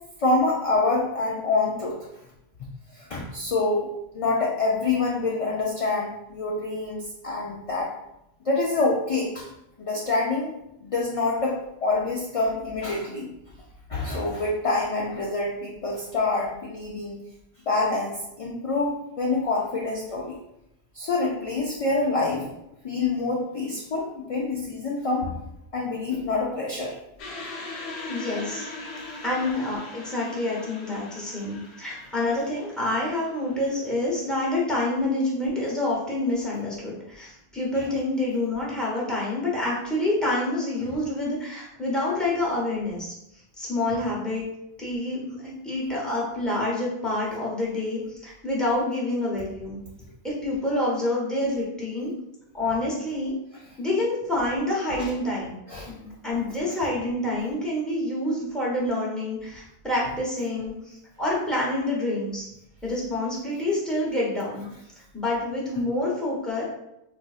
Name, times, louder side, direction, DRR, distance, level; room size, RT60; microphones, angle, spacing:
voice 1, 0.2-2.0 2.9-7.9 8.4-9.5 9.8-10.5 10.8-13.3 13.9-17.2 17.7-20.3 20.9-22.5 22.8-25.4 25.7-27.0 28.9-29.0 37.8-37.9 40.8-41.0 55.0-55.1 55.7-55.9, left 3 dB, 55° left, -3 dB, 0.4 m, -26 dB
sound 1, 27.2-34.3, left 2 dB, 85° left, 0.9 m, -40 dB
voice 2, 28.1-28.7 29.2-44.4 44.8-49.8 50.2-52.1 52.5-53.3 53.8-55.6 55.9-62.4 62.8-64.7 65.1-66.6, left 1 dB, ahead, -6 dB, 0.7 m, -27 dB
3.9 x 2.4 x 2.4 m, 0.84 s
omnidirectional pair, 1.1 m